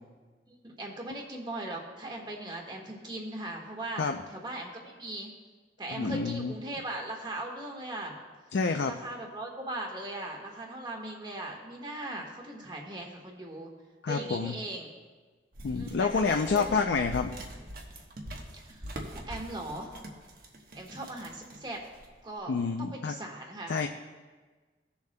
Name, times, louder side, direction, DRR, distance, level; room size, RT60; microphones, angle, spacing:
voice 1, 0.5-4.0 4.3-5.3 5.8-8.2 8.8-13.7 14.1-14.9 15.7-16.8 18.5-19.9 20.7-21.8 22.2-22.5 22.8-23.8, right 1 dB, 25° right, 1 dB, 1.4 m, -39 dB
voice 2, 5.9-6.5 8.5-8.9 14.0-14.5 15.6-17.3 22.5-23.1 23.7-23.9, left 4 dB, 80° left, 5 dB, 0.4 m, -28 dB
sound 1, 15.5-22.3, right 1 dB, 55° right, 1.1 m, -44 dB
18.0 x 7.0 x 2.2 m, 1.4 s
head